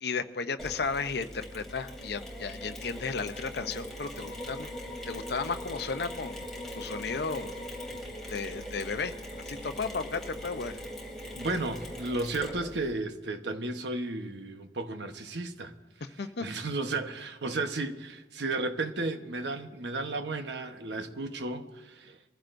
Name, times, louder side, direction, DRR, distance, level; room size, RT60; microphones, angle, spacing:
voice 1, 0.0-4.7 5.1-6.4 6.7-7.5 8.3-9.1 9.5-10.8 16.2-16.4, left 4 dB, 65° left, 0.7 m, -34 dB
Mechanisms, 0.6-12.9, equal, 5° left, 3.0 m, -41 dB
voice 2, 11.3-15.7 16.4-22.2, right 2 dB, 75° right, 1.1 m, -33 dB
23.5 x 15.0 x 2.6 m
head